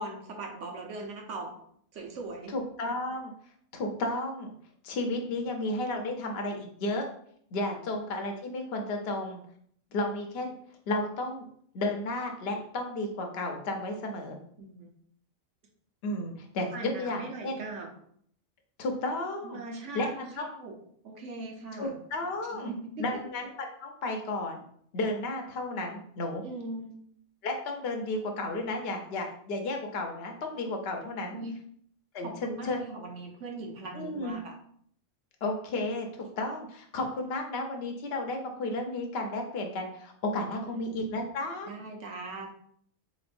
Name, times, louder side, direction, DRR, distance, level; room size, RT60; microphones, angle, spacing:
voice 1, 0.0-1.6 1.9-2.5 14.6-14.9 16.7-17.9 19.4-20.8 21.0-21.9 22.5-23.1 26.4-27.0 31.3-31.6 32.2-34.6 40.6-40.7 41.6-42.5, right 2 dB, 65° right, 2 dB, 1.1 m, -40 dB
voice 2, 2.5-3.3 3.7-4.5 4.8-7.1 7.5-9.4 9.9-10.5 10.9-11.4 11.7-14.4 16.0-17.6 18.8-19.6 19.9-20.5 21.8-24.6 24.9-26.4 27.4-31.4 32.1-32.8 33.9-34.4 35.4-36.1 36.4-41.7, left 2 dB, 55° left, 3 dB, 0.9 m, -33 dB
4.3 x 3.1 x 2.5 m, 0.64 s
omnidirectional pair, 1.4 m